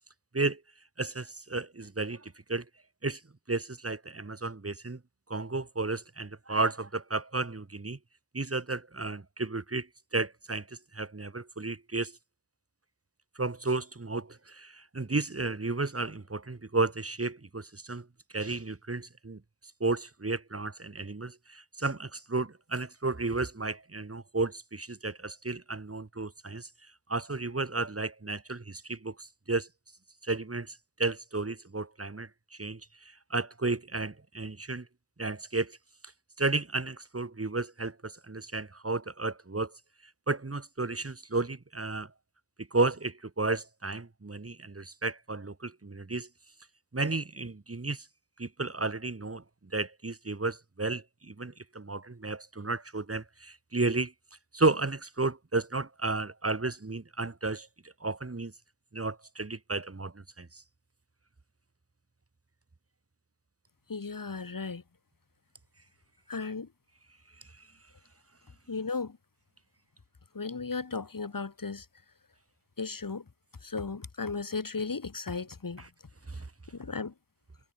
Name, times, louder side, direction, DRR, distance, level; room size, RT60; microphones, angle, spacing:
voice 1, 1.0-2.7 3.0-3.2 3.5-5.0 5.3-8.0 8.3-12.2 13.4-18.1 18.3-19.4 19.8-26.7 27.1-29.7 30.2-34.9 35.2-35.8 36.4-39.7 40.3-42.1 42.6-46.3 46.9-48.1 48.4-54.1 54.5-57.7 58.0-58.5 58.9-60.6 67.6-67.7 75.8-75.9 76.3-76.5, right 3 dB, 35° right, 5.9 m, -33 dB
voice 2, 63.9-64.8 66.3-66.7 68.7-69.2 70.3-71.8 72.8-73.2 73.6-75.8 76.7-77.1, left 4 dB, 55° left, 7.9 m, -35 dB
wide cardioid pair, 85°, 40 cm